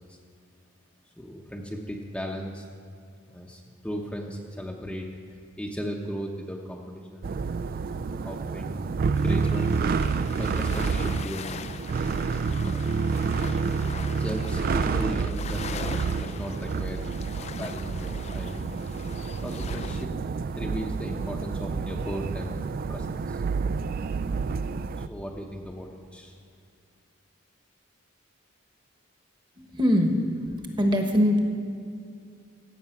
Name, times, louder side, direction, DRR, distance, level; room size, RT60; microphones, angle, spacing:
voice 1, 1.2-2.7 3.3-5.1 5.6-7.4 8.2-9.8 10.4-11.8 12.3-12.9 14.1-17.0 17.4-18.8 19.4-20.1 20.5-23.4 25.1-26.4, equal, 5° left, -1 dB, 0.8 m, -36 dB
sound 1, 7.2-25.1, right 5 dB, 45° right, 0.3 m, -29 dB
sound 2, 9.1-20.0, left 6 dB, 30° left, 0.3 m, -41 dB
voice 2, 29.6-31.4, equal, 20° right, 4 dB, 1.2 m, -23 dB
15.5 x 8.3 x 5.9 m, 2.4 s
head